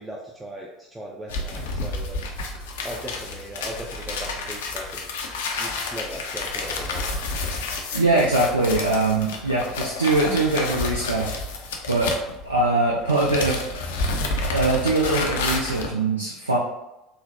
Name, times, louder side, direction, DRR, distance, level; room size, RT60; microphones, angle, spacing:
voice 1, 0.0-2.3 2.8-5.1 5.6-7.1, right 1 dB, 10° right, -2 dB, 0.4 m, -38 dB
sound 1, 1.3-12.7 13.0-15.9, left 3 dB, 70° left, 0.4 m, -30 dB
voice 2, 7.7-11.3 11.9-12.1 12.4-13.6 14.4-16.6, right 2 dB, 85° right, -3 dB, 0.3 m, -22 dB
3.7 x 2.0 x 2.7 m, 0.93 s
figure-of-eight pair, 65°, 0 cm